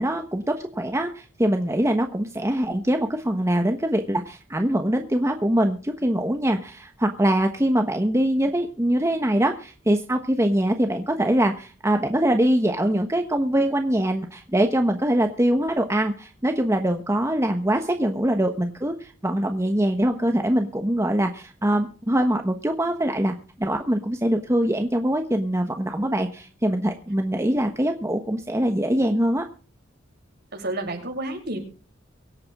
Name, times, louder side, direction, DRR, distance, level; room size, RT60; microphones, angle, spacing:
voice 1, 0.0-29.4, right 1 dB, 15° right, 5 dB, 1.2 m, -23 dB
voice 2, 30.5-31.6, right 2 dB, 55° right, 1 dB, 6.5 m, -30 dB
24.0 x 8.6 x 3.7 m, 0.38 s
head